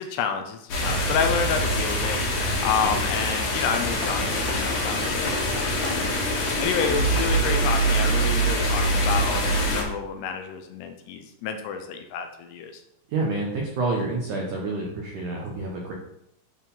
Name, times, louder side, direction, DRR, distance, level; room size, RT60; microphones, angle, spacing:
voice 1, 0.0-12.8, left 6 dB, 80° left, 6 dB, 2.5 m, -29 dB
sound 1, 0.7-9.8, equal, 50° left, 2.3 m, -24 dB
voice 2, 13.1-15.9, right 3 dB, 85° right, -1 dB, 1.7 m, -28 dB
11.5 x 4.6 x 5.5 m, 0.78 s
omnidirectional pair, 5.8 m